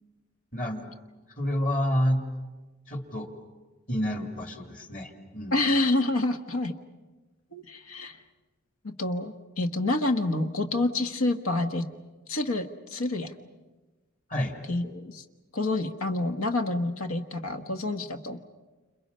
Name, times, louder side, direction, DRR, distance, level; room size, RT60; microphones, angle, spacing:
voice 1, 0.5-0.9 1.4-2.3 2.9-3.3 3.9-5.6 14.3-14.6, equal, 40° left, 4 dB, 2.8 m, -29 dB
voice 2, 5.5-6.8 7.5-8.2 8.8-11.9 12.3-13.3 14.7-15.2 15.5-18.4, left 2 dB, 75° left, 6 dB, 1.4 m, -28 dB
29.5 x 28.0 x 5.6 m, 1.2 s
head